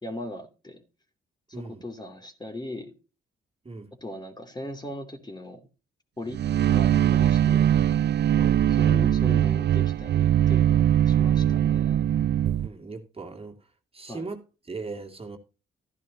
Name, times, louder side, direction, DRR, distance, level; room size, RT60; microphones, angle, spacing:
voice 1, 0.0-0.8 1.5-2.9 4.0-5.6 6.2-6.4 6.7-7.7 8.7-12.1 14.1-14.3, left 1 dB, 20° left, 3.0 m, -39 dB
voice 2, 1.5-1.8 3.6-3.9 8.4-8.6 12.6-13.6 13.9-15.4, right 3 dB, 25° right, 2.4 m, -38 dB
sound 1, 6.3-12.7, right 10 dB, 55° right, 0.5 m, -21 dB
13.5 x 11.0 x 2.8 m
cardioid pair, 65°, 21 cm